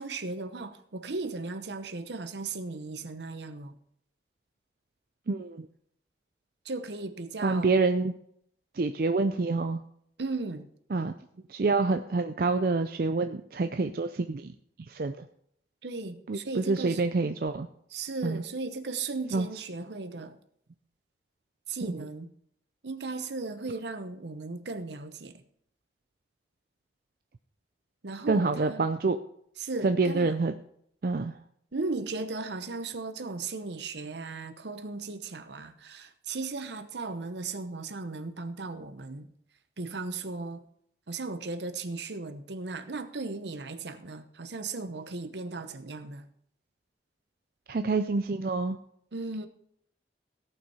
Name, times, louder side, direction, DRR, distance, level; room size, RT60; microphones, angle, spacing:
voice 1, 0.0-3.7 6.6-7.7 10.2-10.6 15.8-17.0 17.9-20.4 21.7-22.3 22.8-25.4 28.0-28.8 29.6-30.4 31.7-39.3 39.8-40.6 41.1-46.3 49.1-49.5, right 3 dB, 75° right, 0.9 m, -36 dB
voice 2, 5.3-5.7 7.4-8.1 8.8-9.8 10.9-11.1 11.5-14.5 14.9-15.2 16.3-17.7 18.2-18.4 19.3-19.5 21.9-22.0 28.3-29.2 29.8-30.5 31.0-31.3 47.7-48.8, right 3 dB, 50° right, 0.4 m, -27 dB
17.0 x 5.8 x 4.3 m
head